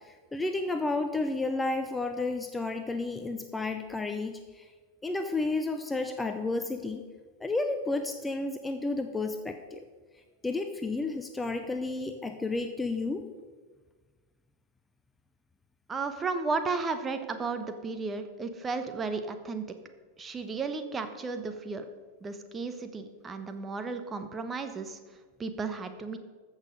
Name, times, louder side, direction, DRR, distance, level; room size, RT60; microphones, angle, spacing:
voice 1, 0.1-4.6 5.0-7.0 7.4-9.8 10.4-13.2, left 3 dB, 10° left, 7 dB, 0.7 m, -31 dB
voice 2, 15.9-19.6 20.2-21.8 22.2-25.0 25.4-26.2, right 4 dB, 20° right, 8 dB, 1.0 m, -34 dB
14.5 x 6.6 x 5.2 m, 1.4 s
figure-of-eight pair, 90°, 0 cm